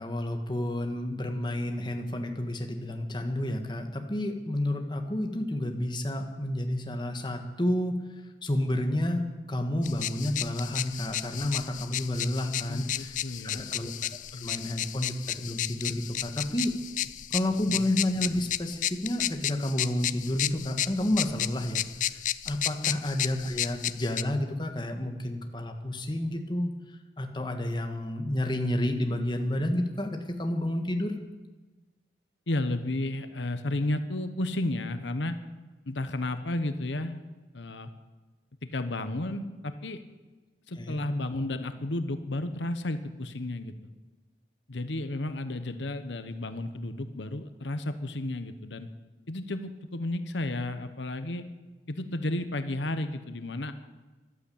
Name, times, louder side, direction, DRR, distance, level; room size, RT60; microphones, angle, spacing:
voice 1, 0.0-8.0 8.4-13.2 13.4-13.9 14.4-16.7 17.3-22.2 22.4-31.2 40.8-41.0, left 1 dB, 25° left, 4 dB, 1.5 m, -30 dB
sound 1, 9.8-24.2, left 12 dB, 45° left, 0.4 m, -33 dB
voice 2, 12.6-13.8 14.3-14.5 17.7-17.9 32.5-35.4 35.9-37.2 37.5-37.9 38.7-40.0 40.7-43.7 44.7-48.9 49.3-51.5 51.9-53.7, left 1 dB, 85° left, 9 dB, 1.1 m, -32 dB
14.0 x 12.0 x 8.6 m, 1.2 s
head